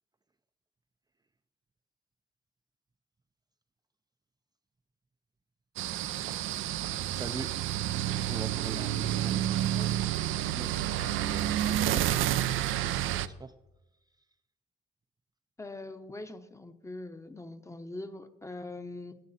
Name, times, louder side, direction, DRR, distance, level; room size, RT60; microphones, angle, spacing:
sound 1, 5.8-13.3, right 12 dB, 85° right, 0.5 m, -30 dB
voice 1, 7.1-7.5 8.3-10.0 12.7-13.5, right 4 dB, 20° right, 7 dB, 0.5 m, -44 dB
voice 2, 15.6-19.2, left 2 dB, 15° left, 9 dB, 0.9 m, -42 dB
16.5 x 9.1 x 4.2 m, 0.96 s
cardioid pair, 90°, 20 cm